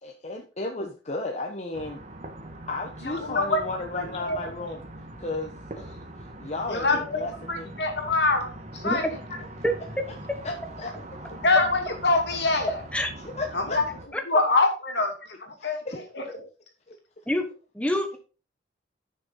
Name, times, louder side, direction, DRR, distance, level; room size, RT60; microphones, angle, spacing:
voice 1, 0.0-2.0 2.7-4.8 5.2-6.0 6.4-7.7 10.4-10.9 13.2-13.8 15.6-16.3 16.9-17.0, left 2 dB, 40° left, 2 dB, 1.1 m, -34 dB
sound 1, 1.7-14.1, right 1 dB, 40° right, 1.5 m, -42 dB
voice 2, 3.1-3.6 3.9-4.4 6.7-7.2 7.5-9.1 11.4-12.8 13.5-13.8 14.3-15.8 16.1-16.2, left 3 dB, 70° left, 3 dB, 2.7 m, -24 dB
voice 3, 17.7-18.2, equal, 5° left, 5 dB, 1.2 m, -25 dB
10.5 x 6.5 x 3.9 m, 0.34 s
head